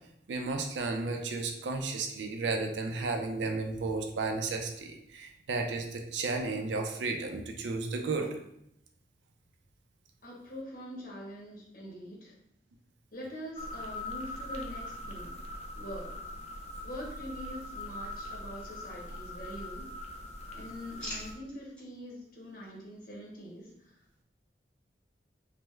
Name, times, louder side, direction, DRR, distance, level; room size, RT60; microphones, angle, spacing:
voice 1, 0.3-8.4, right 3 dB, 85° right, 4 dB, 0.4 m, -33 dB
voice 2, 10.2-12.3 13.1-15.4 15.7-16.1 16.8-19.9 20.5-24.2, equal, 55° left, -2 dB, 0.8 m, -44 dB
sound 1, 13.6-21.3, left 1 dB, 40° left, 0.4 m, -42 dB
sound 2, 17.9-19.0 19.4-20.1 20.4-21.9 22.4-22.7, equal, 5° left, 0.9 m, -47 dB
3.3 x 2.1 x 3.1 m, 0.75 s
head